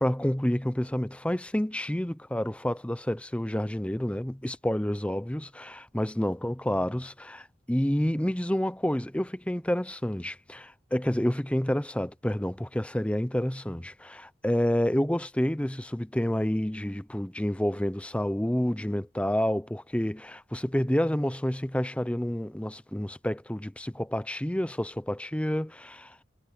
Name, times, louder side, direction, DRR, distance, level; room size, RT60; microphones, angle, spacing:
voice 1, 0.0-26.2, equal, 5° left, 0.6 m, -29 dB
head